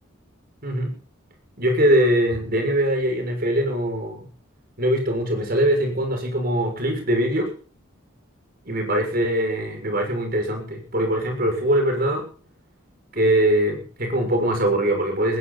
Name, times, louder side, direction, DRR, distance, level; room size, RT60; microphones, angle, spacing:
voice 1, 0.6-1.0 1.6-4.2 4.8-7.5 8.7-12.2 13.1-15.4, right 1 dB, 45° right, 4 dB, 6.6 m, -22 dB
21.0 x 15.0 x 4.2 m, 0.41 s
head